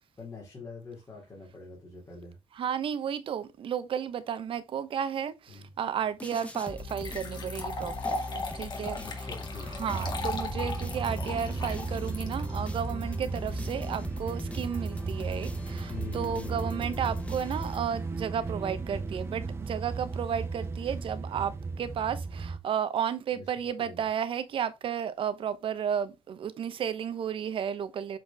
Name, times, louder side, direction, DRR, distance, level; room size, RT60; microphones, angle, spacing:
voice 1, 0.2-2.4 5.5-5.7 9.0-10.1 15.9-17.0 23.3-23.4 23.8-24.0, left 4 dB, 30° left, 3.0 m, -44 dB
voice 2, 2.5-8.2 8.5-9.3 9.8-28.2, right 8 dB, 60° right, 1.0 m, -33 dB
sound 1, 6.2-18.3, left 2 dB, 10° left, 0.9 m, -41 dB
sound 2, 6.3-6.4 6.9-13.2, left 3 dB, 45° left, 2.1 m, -37 dB
sound 3, 9.9-22.6, right 4 dB, 25° right, 0.9 m, -35 dB
7.5 x 4.6 x 3.5 m
cardioid pair, 120°, 10 cm